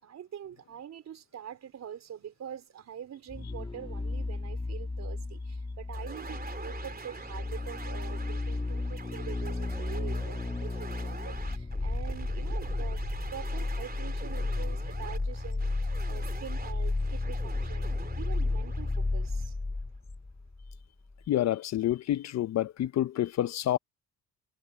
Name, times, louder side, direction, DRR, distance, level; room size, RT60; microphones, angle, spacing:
voice 1, 0.0-13.0 13.3-19.6, right 9 dB, 60° right, 4.2 m, -45 dB
sound 1, 3.3-20.8 21.1-21.2, left 3 dB, 15° left, 1.4 m, -33 dB
sound 2, 5.9-19.8, right 4 dB, 30° right, 3.4 m, -44 dB
voice 2, 21.3-23.8, left 12 dB, 60° left, 0.7 m, -28 dB
cardioid pair, 90°, 30 cm